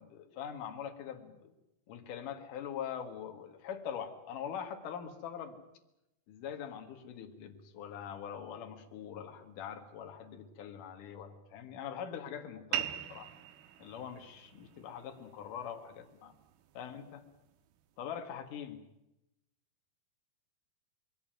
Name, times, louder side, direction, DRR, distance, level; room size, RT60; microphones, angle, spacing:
voice 1, 0.0-1.5 1.9-5.6 6.3-13.3 13.8-16.3 16.7-17.2 18.0-18.8, left 8 dB, 60° left, 6 dB, 3.1 m, -43 dB
sound 1, 12.7-17.8, right 11 dB, 80° right, 3.0 m, -43 dB
22.0 x 17.0 x 9.1 m, 0.90 s
omnidirectional pair, 4.5 m